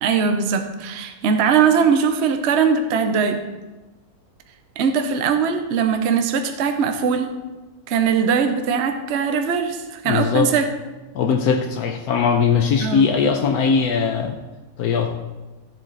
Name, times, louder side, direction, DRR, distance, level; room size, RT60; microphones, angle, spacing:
voice 1, 0.0-3.4 4.8-7.3 7.9-10.6 12.8-13.1, right 6 dB, 50° right, 7 dB, 1.0 m, -20 dB
voice 2, 10.1-10.5 11.1-14.4 14.8-15.1, left 6 dB, 80° left, 5 dB, 1.2 m, -20 dB
14.5 x 7.6 x 4.0 m, 1.2 s
omnidirectional pair, 1.6 m